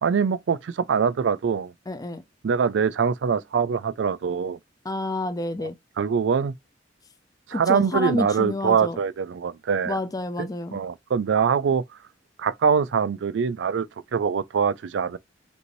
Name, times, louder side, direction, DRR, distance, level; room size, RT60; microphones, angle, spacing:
voice 1, 0.0-1.7 2.4-4.6 5.6-5.7 6.0-6.5 7.5-10.0 10.4-11.8 12.4-15.2, right 6 dB, 75° right, 0.4 m, -23 dB
voice 2, 1.9-2.2 4.8-5.8 7.5-9.0 9.9-10.8, left 2 dB, 20° left, 0.5 m, -29 dB
5.2 x 2.6 x 3.1 m
head